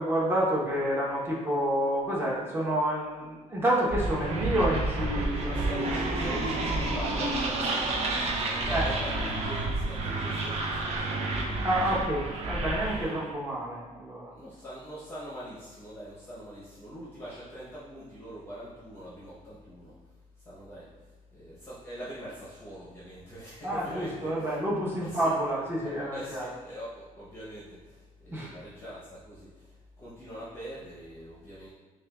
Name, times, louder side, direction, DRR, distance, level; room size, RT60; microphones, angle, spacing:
voice 1, 0.0-5.7 8.7-8.9 11.6-14.3 23.6-26.5 28.3-28.5, right 1 dB, 15° right, -6 dB, 0.9 m, -29 dB
sound 1, 3.9-13.3, right 2 dB, 45° right, 0.5 m, -30 dB
voice 2, 5.4-12.2 13.1-13.4 14.3-19.9 20.4-20.9 21.3-24.6 25.1-25.3 25.8-31.7, equal, 15° left, -9 dB, 0.8 m, -43 dB
6.3 x 2.3 x 2.3 m, 1.3 s
cardioid pair, 140°, 14 cm